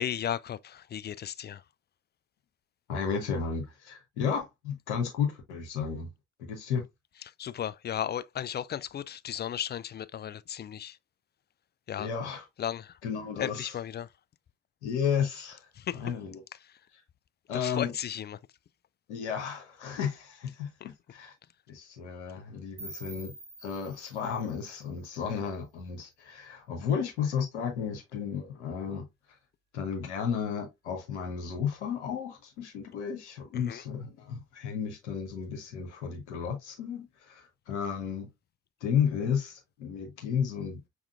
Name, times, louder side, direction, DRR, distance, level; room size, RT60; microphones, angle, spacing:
voice 1, 0.0-1.6 7.4-11.0 11.9-12.1 12.6-13.0 13.4-14.1 15.7-16.0 16.6-16.8 17.5-18.4 20.8-20.9 33.5-33.8, left 10 dB, 30° left, 0.4 m, -35 dB
voice 2, 2.9-6.1 6.4-6.8 12.0-12.4 13.0-13.7 14.8-15.7 15.9-16.4 17.5-17.9 19.1-21.3 21.7-23.3 23.6-29.1 29.7-38.3 38.8-40.8, left 7 dB, 85° left, 0.9 m, -33 dB
sound 1, 22.8-25.7, right 2 dB, 85° right, 1.8 m, -48 dB
5.8 x 3.6 x 2.3 m
hypercardioid pair, 40°, 34 cm